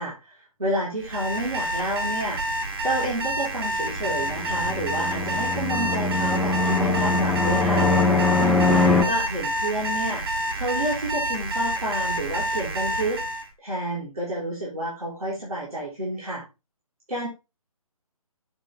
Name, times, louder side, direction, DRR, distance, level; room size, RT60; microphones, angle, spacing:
voice 1, 0.0-2.4 2.8-7.9 8.4-16.4 17.1-17.3, right 1 dB, 80° right, -5 dB, 4.0 m, -30 dB
Alarm, 1.0-13.5, right 1 dB, 40° right, 1.7 m, -28 dB
Fixed-wing aircraft airplane, 4.1-9.0, left 3 dB, ahead, 0.5 m, -22 dB
8.1 x 6.7 x 3.4 m, 0.27 s
figure-of-eight pair, 145°, 19 cm